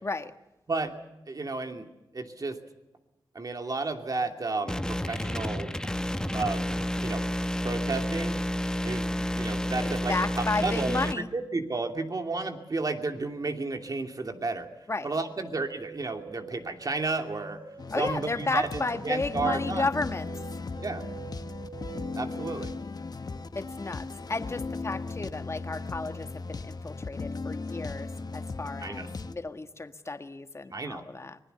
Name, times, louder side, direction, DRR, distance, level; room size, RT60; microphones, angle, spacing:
voice 1, 0.0-0.3 9.8-11.3 14.9-15.1 17.9-20.3 23.5-31.4, left 3 dB, 35° left, 9 dB, 1.5 m, -33 dB
voice 2, 1.3-1.9 2.1-2.6 3.3-5.9 6.3-6.6 7.0-7.2 7.6-8.4 8.8-14.7 15.0-17.6 18.0-19.9 20.8-21.0 22.2-22.7 28.8-29.1 30.7-31.0, right 3 dB, 45° right, 5 dB, 2.7 m, -32 dB
sound 1, 4.7-11.1, equal, 10° left, 1.0 m, -30 dB
sound 2, 15.7-22.9, right 8 dB, 70° right, 1.5 m, -47 dB
sound 3, 17.8-29.3, left 4 dB, 50° left, 1.3 m, -37 dB
25.0 x 20.0 x 6.9 m, 1.0 s
wide cardioid pair, 85°, 9 cm